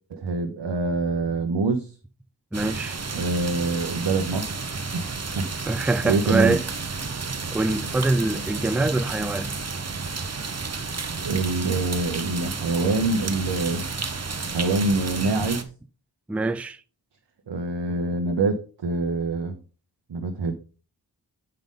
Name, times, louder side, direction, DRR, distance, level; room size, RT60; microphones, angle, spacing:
voice 1, 0.1-1.9 3.1-4.5 4.9-5.5 6.1-6.6 8.8-8.9 11.2-13.9 14.5-15.7 17.5-19.6 20.1-20.5, right 3 dB, 75° right, 0.8 m, -25 dB
voice 2, 2.5-3.0 5.7-6.7 7.5-9.6 16.3-16.8, right 2 dB, 5° right, 0.3 m, -24 dB
sound 1, 2.5-15.6, right 4 dB, 35° right, 0.8 m, -32 dB
7.8 x 5.2 x 3.6 m
wide cardioid pair, 60°, 42 cm